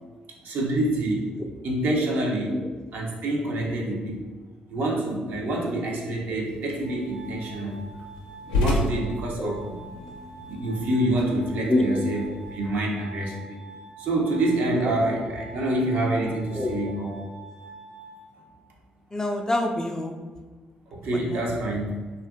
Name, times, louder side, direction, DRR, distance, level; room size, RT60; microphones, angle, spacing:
voice 1, 0.4-1.3 1.6-2.6 2.9-4.2 4.7-7.8 8.5-9.8 10.5-13.6 14.0-17.2 20.9-21.9, right 1 dB, 65° right, -2 dB, 0.6 m, -27 dB
sound 1, 6.4-12.7, left 2 dB, 90° left, 0.4 m, -33 dB
Glass, 6.8-18.8, right 3 dB, 80° right, 1.2 m, -46 dB
voice 2, 11.7-12.0 16.5-16.8 19.1-20.1 21.1-21.4, left 1 dB, 15° left, 3 dB, 0.3 m, -25 dB
2.7 x 2.4 x 2.4 m, 1.3 s
hypercardioid pair, 50°, 4 cm